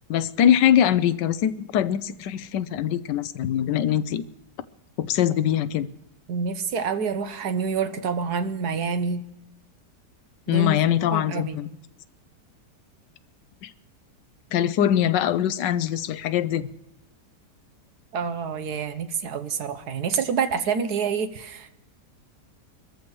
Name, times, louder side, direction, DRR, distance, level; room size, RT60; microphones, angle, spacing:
voice 1, 0.1-4.2 5.0-5.9 10.5-11.7 13.6-13.7 14.5-16.7, left 10 dB, 85° left, 14 dB, 1.3 m, -22 dB
voice 2, 6.3-9.2 10.5-10.8 11.1-11.6 18.1-21.7, right 6 dB, 70° right, 10 dB, 1.4 m, -27 dB
25.5 x 13.5 x 3.1 m, 0.92 s
omnidirectional pair, 1.8 m